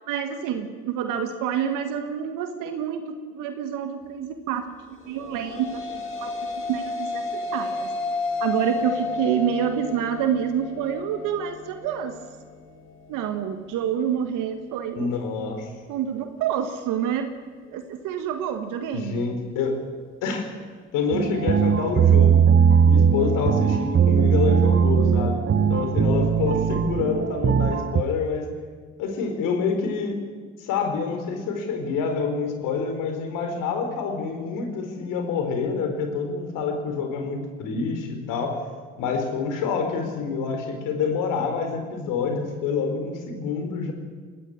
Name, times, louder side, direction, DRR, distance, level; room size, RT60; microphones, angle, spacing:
voice 1, 0.1-4.6 5.1-7.2 7.5-7.9 8.4-12.2 13.1-15.1 15.9-17.3 17.7-19.4, right 9 dB, 75° right, 7 dB, 1.7 m, -28 dB
sound 1, 5.1-13.6, left 3 dB, 40° left, 5.4 m, -32 dB
voice 2, 15.0-15.7 18.9-19.8 20.2-20.5 20.9-22.4 22.8-25.4 25.7-28.5 29.0-30.2 30.6-38.6 39.0-43.9, left 5 dB, 75° left, 5 dB, 4.1 m, -27 dB
sound 2, 21.1-28.0, right 7 dB, 40° right, 1.1 m, -19 dB
21.0 x 14.5 x 8.7 m, 1.6 s
hypercardioid pair, 55°, 32 cm